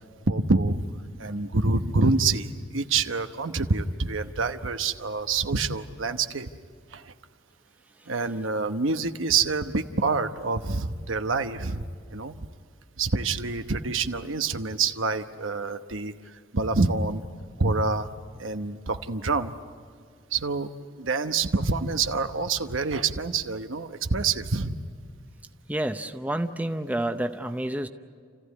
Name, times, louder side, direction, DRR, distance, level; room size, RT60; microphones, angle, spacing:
voice 1, 0.3-0.8 1.2-6.5 6.9-7.1 8.1-11.8 12.1-12.4 13.0-16.1 16.5-17.2 17.6-18.1 18.4-19.5 20.3-20.7 21.0-24.8, right 4 dB, 90° right, 8 dB, 1.0 m, -26 dB
voice 2, 25.7-27.9, right 1 dB, 10° right, 7 dB, 0.7 m, -29 dB
29.5 x 15.0 x 9.7 m, 2.1 s
head